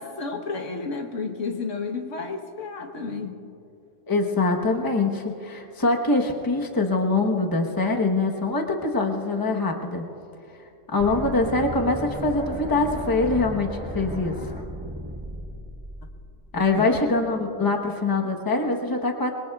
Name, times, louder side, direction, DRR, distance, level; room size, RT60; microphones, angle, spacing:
voice 1, 0.0-3.4 16.8-16.9, left 4 dB, 75° left, 4 dB, 1.5 m, -31 dB
voice 2, 4.1-10.0 10.9-14.4 16.5-19.3, left 3 dB, 20° left, 1 dB, 1.0 m, -23 dB
sound 1, 11.0-17.0, equal, 5° right, 1.6 m, -35 dB
26.5 x 22.0 x 2.4 m, 2.7 s
omnidirectional pair, 1.3 m